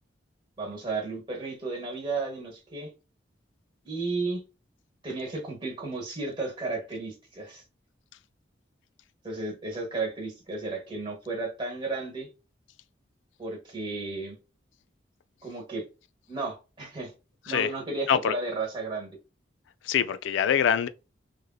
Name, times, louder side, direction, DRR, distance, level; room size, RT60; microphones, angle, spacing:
voice 1, 0.6-2.9 3.8-4.4 5.0-7.6 9.2-12.3 13.4-14.4 15.4-15.8 16.3-17.1 17.5-19.1, right 3 dB, 25° right, 1.1 m, -33 dB
voice 2, 19.9-20.9, left 8 dB, 80° left, 0.3 m, -24 dB
3.1 x 2.6 x 2.3 m
head